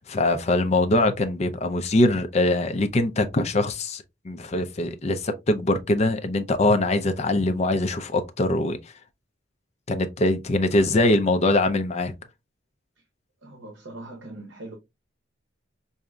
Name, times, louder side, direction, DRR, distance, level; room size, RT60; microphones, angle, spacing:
voice 1, 0.1-8.8 9.9-12.1, left 2 dB, 35° left, 0.5 m, -22 dB
voice 2, 13.4-14.8, right 2 dB, 80° right, 0.8 m, -41 dB
4.8 x 2.7 x 2.3 m
head